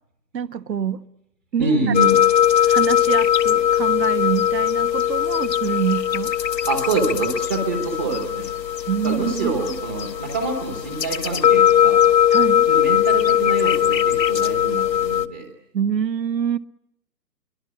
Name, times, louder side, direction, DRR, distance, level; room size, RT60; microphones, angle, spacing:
voice 1, 0.3-1.0 1.5-2.2 2.6-6.3 8.9-9.8 12.3-12.7 15.7-16.6, right 8 dB, 80° right, 1.5 m, -26 dB
voice 2, 1.6-2.1 6.7-8.5 9.0-12.0 12.7-15.5, right 3 dB, 10° right, 1.0 m, -26 dB
sound 1, 1.9-15.3, left 10 dB, 80° left, 1.4 m, -20 dB
29.5 x 23.5 x 8.5 m
hypercardioid pair, 170°, 50 cm